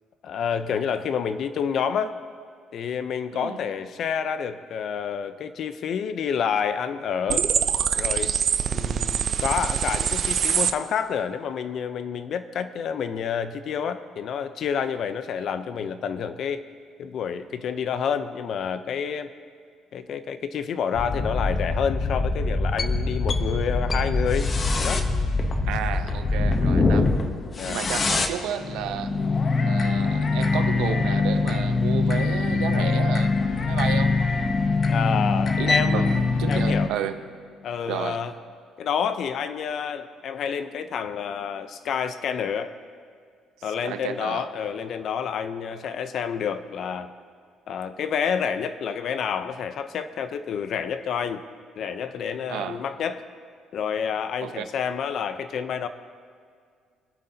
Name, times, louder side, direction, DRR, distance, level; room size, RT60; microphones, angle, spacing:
voice 1, 0.2-2.1 2.7-7.5 7.9-8.3 8.7-16.7 17.0-19.3 19.9-25.1 27.6-27.8 29.2-29.4 34.9-36.2 36.5-36.9 37.6-38.3 38.8-42.8 43.6-47.1 47.7-51.4 51.8-53.2 53.7-55.9, left 7 dB, 55° left, 11 dB, 0.6 m, -29 dB
sound 1, 7.3-10.7, right 7 dB, 45° right, 0.5 m, -24 dB
sound 2, 20.9-36.9, left 3 dB, 35° left, 0.8 m, -23 dB
voice 2, 25.7-27.1 27.6-29.2 29.6-34.1 35.6-37.2 37.9-38.2 43.8-44.5 52.5-52.8 54.4-54.6, right 10 dB, 85° right, 8 dB, 0.8 m, -32 dB
24.0 x 8.5 x 2.8 m, 2.1 s
cardioid pair, 120°, 0 cm